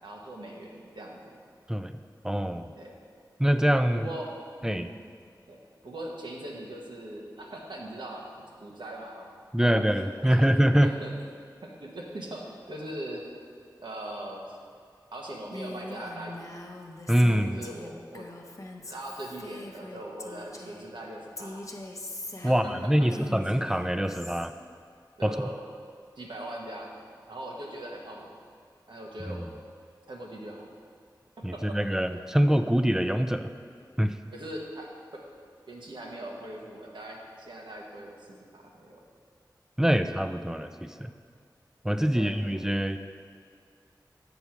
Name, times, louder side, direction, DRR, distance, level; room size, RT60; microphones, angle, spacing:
voice 1, 0.0-1.4 2.8-2.9 3.9-4.3 4.6-4.9 5.5-5.6 5.8-9.3 9.6-10.4 10.8-11.1 11.6-13.3 13.8-14.6 15.1-16.5 17.3-18.3 18.8-21.7 22.6-22.7 23.1-23.3 25.2-25.5 26.2-26.9 27.3-28.3 28.9-29.4 30.1-30.7 31.5-31.8 34.3-34.9 35.1-35.2 35.7-39.0 42.1-42.3, right 1 dB, 85° right, -1 dB, 1.1 m, -40 dB
voice 2, 2.2-2.7 3.4-4.1 4.6-4.9 9.5-10.9 17.1-17.6 22.4-24.5 25.2-25.5 29.3-29.5 31.4-33.5 34.0-34.2 39.8-41.1 41.8-43.0, equal, 5° right, 9 dB, 0.4 m, -24 dB
Female speech woman speaking, 15.5-20.9 21.4-24.5, left 1 dB, 40° left, 0.7 m, -42 dB
6.9 x 4.6 x 5.6 m, 2.2 s
cardioid pair, 45°, 8 cm